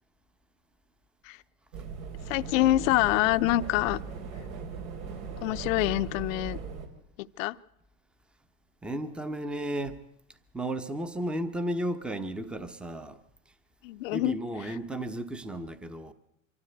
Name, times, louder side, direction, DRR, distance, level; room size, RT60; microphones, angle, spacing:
sound 1, 1.7-6.9, right 5 dB, 75° right, 3.5 m, -38 dB
voice 1, 2.3-4.0 5.4-6.6 7.4-7.6 13.8-14.4, left 17 dB, 70° left, 0.7 m, -25 dB
voice 2, 8.8-10.0 10.5-13.2 13.5-13.6 14.1-16.1, right 1 dB, ahead, 0.7 m, -34 dB
24.5 x 13.5 x 7.9 m
supercardioid pair, 140°, 41 cm